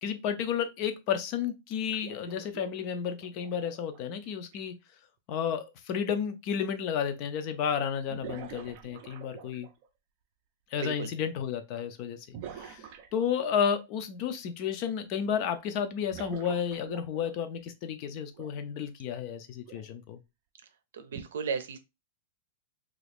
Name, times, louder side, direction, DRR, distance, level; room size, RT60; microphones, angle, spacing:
voice 1, 0.0-4.7 5.3-9.7 10.7-20.2, left 8 dB, 30° left, 0.4 m, -32 dB
sound 1, 1.9-4.6 6.5-6.6 8.1-9.9 12.3-13.6 16.1-17.6 18.3-18.5 19.7-19.9 21.1-21.2, right 8 dB, 35° right, 0.4 m, -46 dB
voice 2, 10.7-11.1 20.9-21.8, right 6 dB, 80° right, 0.6 m, -35 dB
2.9 x 2.5 x 3.4 m
supercardioid pair, 175°, 0 cm